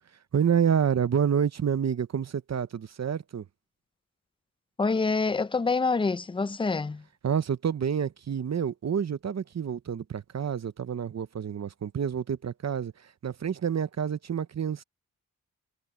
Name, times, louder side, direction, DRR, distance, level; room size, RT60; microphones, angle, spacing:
voice 1, 0.3-3.4 7.2-14.8, right 8 dB, 50° right, 0.7 m, -28 dB
voice 2, 4.8-7.0, left 4 dB, 15° left, 0.4 m, -26 dB
wide cardioid pair, 135°, 33 cm